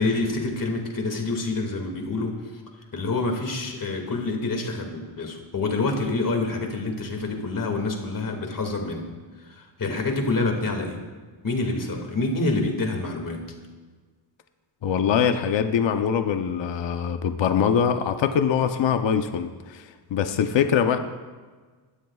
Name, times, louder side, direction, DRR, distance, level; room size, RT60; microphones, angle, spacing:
voice 1, 0.0-2.4 2.9-9.0 9.5-11.0 11.4-13.4, left 3 dB, 40° left, 2 dB, 2.2 m, -27 dB
voice 2, 14.8-21.0, left 7 dB, 60° left, 7 dB, 0.8 m, -23 dB
20.5 x 13.0 x 2.4 m, 1.4 s
wide cardioid pair, 130°, 49 cm